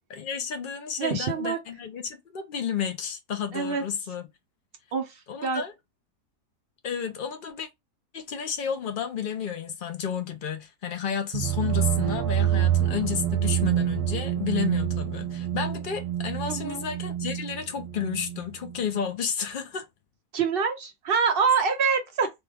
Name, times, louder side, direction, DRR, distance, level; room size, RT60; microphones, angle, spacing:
voice 1, 0.1-4.2 5.3-5.7 6.8-7.7 8.1-19.9, left 7 dB, 60° left, 0.5 m, -32 dB
voice 2, 1.0-1.6 3.5-3.8 4.9-5.6 16.5-16.8 20.3-22.3, right 5 dB, 60° right, 0.6 m, -25 dB
sound 1, 11.3-19.0, right 11 dB, 85° right, 1.1 m, -27 dB
3.2 x 2.2 x 3.4 m
omnidirectional pair, 1.6 m